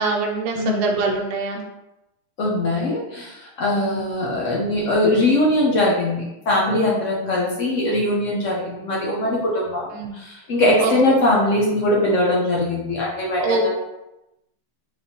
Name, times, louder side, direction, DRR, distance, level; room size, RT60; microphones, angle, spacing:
voice 1, 0.0-1.6 3.7-4.0 9.9-10.1 10.8-10.9 13.4-13.7, right 3 dB, 75° right, 0 dB, 1.6 m, -23 dB
voice 2, 2.4-9.8 10.1-13.7, left 1 dB, 85° left, -4 dB, 0.6 m, -21 dB
4.4 x 3.4 x 2.8 m, 0.93 s
omnidirectional pair, 2.4 m